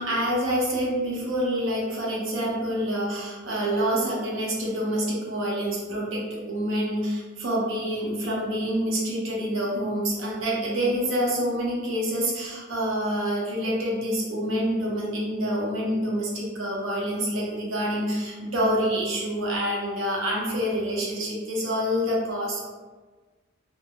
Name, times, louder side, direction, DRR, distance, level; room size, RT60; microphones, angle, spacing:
voice 1, 0.0-22.6, equal, 75° right, -3 dB, 0.6 m, -27 dB
2.2 x 2.0 x 2.9 m, 1.3 s
head